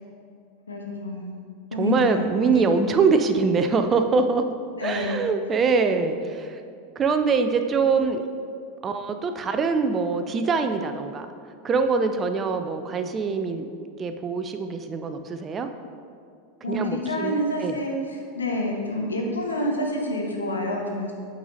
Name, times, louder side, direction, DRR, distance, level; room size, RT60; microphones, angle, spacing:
voice 1, 0.7-1.4 1.7-2.9 4.8-5.3 16.6-21.1, left 1 dB, 80° left, 0 dB, 1.0 m, -28 dB
voice 2, 1.8-4.5 4.8-6.6 7.0-8.2 8.8-11.3 11.6-13.7 14.0-15.7 16.7-17.7, right 4 dB, 25° right, 8 dB, 0.4 m, -23 dB
8.3 x 4.1 x 4.0 m, 2.4 s
figure-of-eight pair, 85°, 0 cm